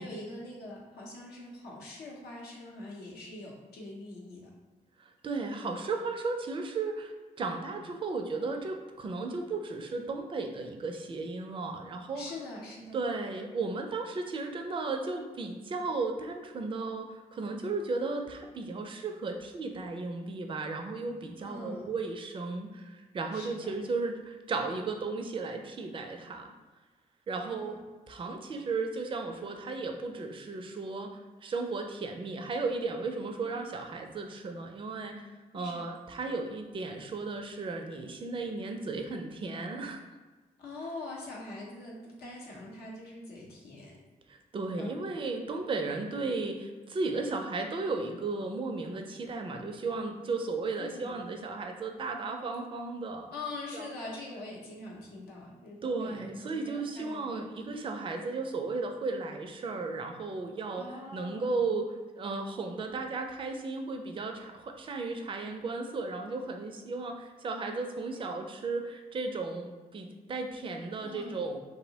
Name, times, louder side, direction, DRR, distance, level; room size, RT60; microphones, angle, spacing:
voice 1, 0.0-4.5 12.1-13.0 21.4-21.9 23.3-23.7 27.5-27.8 33.4-33.7 35.5-35.8 40.6-44.0 44.8-45.2 50.8-51.2 53.3-57.7 60.8-61.5 71.0-71.5, left 2 dB, 85° left, -3 dB, 0.6 m, -43 dB
voice 2, 5.0-12.2 12.9-26.5 27.3-27.7 28.1-31.1 31.4-35.2 35.5-40.0 44.3-53.3 53.7-53.9 55.8-61.9 62.2-71.6, right 3 dB, 35° right, 4 dB, 0.4 m, -35 dB
2.7 x 2.0 x 2.7 m, 1.3 s
supercardioid pair, 50°, 16 cm